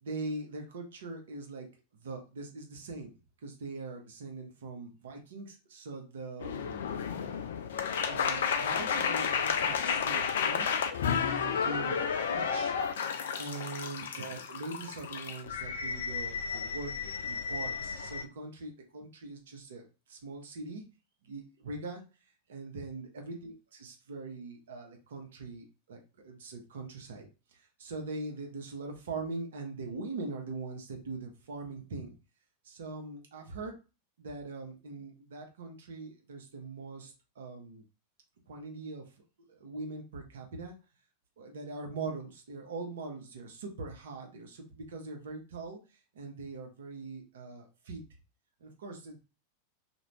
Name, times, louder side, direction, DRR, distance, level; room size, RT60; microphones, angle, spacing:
voice 1, 0.0-1.7 2.0-3.1 3.4-6.8 8.0-10.7 11.3-12.0 12.3-12.8 13.4-20.8 21.2-22.0 22.5-27.3 27.5-32.1 32.6-33.7 34.2-37.8 38.5-39.1 39.5-40.7 41.4-45.8 46.1-48.0 48.6-49.2, right 3 dB, 60° right, 2 dB, 0.8 m, -42 dB
sound 1, 6.4-18.2, left 6 dB, 60° left, 0.3 m, -32 dB
2.5 x 2.2 x 3.1 m, 0.31 s
figure-of-eight pair, 90°, 0 cm